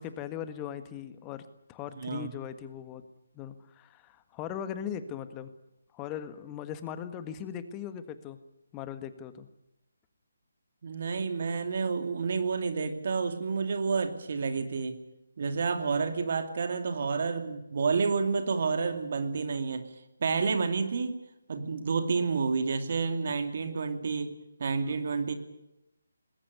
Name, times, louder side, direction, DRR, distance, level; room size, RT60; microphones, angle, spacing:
voice 1, 0.0-3.0 3.3-5.5 5.9-8.4 8.7-9.5 24.8-25.0, left 9 dB, 20° left, 11 dB, 1.6 m, -39 dB
voice 2, 2.0-2.3 10.8-15.0 15.4-19.9 20.2-21.2 21.5-24.3 24.6-25.3, right 5 dB, 50° right, 7 dB, 2.5 m, -29 dB
20.5 x 17.5 x 9.7 m, 0.88 s
figure-of-eight pair, 150°, 0 cm